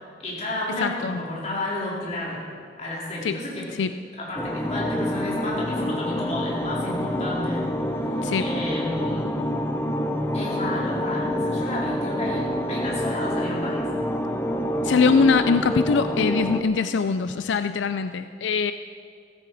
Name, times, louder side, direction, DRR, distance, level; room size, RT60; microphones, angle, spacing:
voice 1, 0.2-2.4 2.8-3.7 4.2-7.7 8.1-9.4 10.3-13.8, left 1 dB, 40° left, -6 dB, 4.4 m, -31 dB
voice 2, 0.8-1.2 3.2-3.4 3.8-3.9 8.2-8.5 14.8-18.7, left 5 dB, 90° left, 10 dB, 0.4 m, -22 dB
sound 1, 4.4-16.6, equal, 15° left, 0.8 m, -27 dB
15.5 x 15.0 x 4.9 m, 2.3 s
head